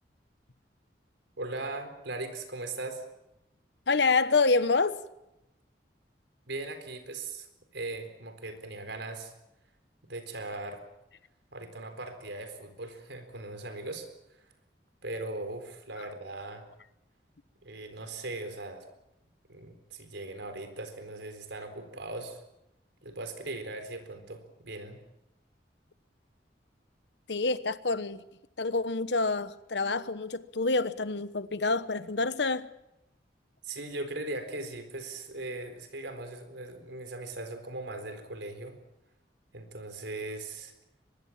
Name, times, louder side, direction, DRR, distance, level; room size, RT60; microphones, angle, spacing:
voice 1, 1.4-3.0 6.5-7.5 7.7-9.3 10.0-10.8 11.5-14.1 15.0-16.6 17.6-18.9 19.5-22.4 23.0-25.0 33.6-38.8 39.5-40.7, right 2 dB, 80° right, 4.1 m, -39 dB
voice 2, 3.9-5.0 27.3-28.2 28.6-32.7, left 3 dB, 75° left, 1.1 m, -27 dB
23.5 x 21.5 x 7.4 m
head